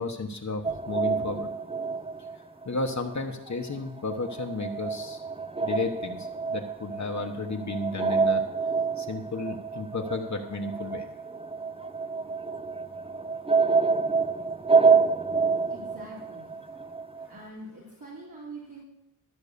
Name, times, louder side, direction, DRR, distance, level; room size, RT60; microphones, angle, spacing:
voice 1, 0.0-1.5 2.6-5.2 5.6-8.4 9.0-11.1, left 3 dB, 55° left, 3 dB, 1.2 m, -33 dB
sound 1, 0.6-3.2 3.5-17.3, right 5 dB, 15° right, 0.6 m, -28 dB
voice 2, 15.7-16.6 17.3-18.8, right 2 dB, 60° right, -6 dB, 3.0 m, -44 dB
13.0 x 6.1 x 6.8 m, 0.84 s
wide cardioid pair, 60°, 35 cm